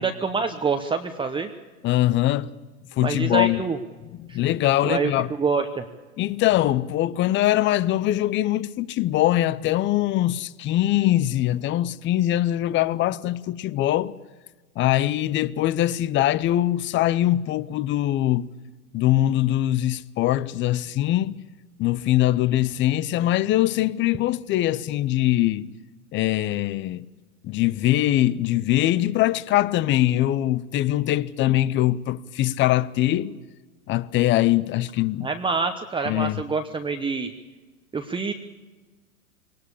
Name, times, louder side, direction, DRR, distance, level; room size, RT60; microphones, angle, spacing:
voice 1, 0.0-1.5 3.0-3.8 4.3-4.4 4.8-5.8 35.2-37.3 37.9-38.3, right 5 dB, 10° right, 1.0 m, -26 dB
voice 2, 1.8-2.5 3.0-3.6 4.2-5.3 6.2-14.2 14.8-18.5 18.9-21.4 21.8-25.7 26.1-27.0 27.4-33.4 33.9-35.3 36.0-36.4, left 14 dB, 25° left, 0.7 m, -22 dB
22.5 x 18.5 x 8.4 m
hypercardioid pair, 110°, 45 cm